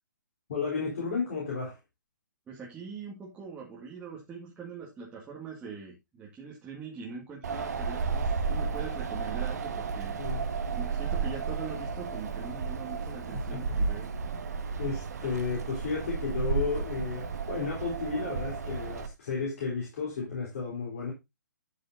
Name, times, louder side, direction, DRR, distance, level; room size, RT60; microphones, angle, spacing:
voice 1, 0.5-1.8 10.1-10.4 13.5-13.6 14.2-14.4 14.8-21.1, left 5 dB, 45° left, 4.2 m, -33 dB
voice 2, 2.5-10.2 10.7-14.1, right 5 dB, 10° right, 2.2 m, -42 dB
Wind, 7.4-19.1, right 5 dB, 55° right, 1.7 m, -33 dB
12.5 x 6.5 x 2.7 m
figure-of-eight pair, 130°, 11 cm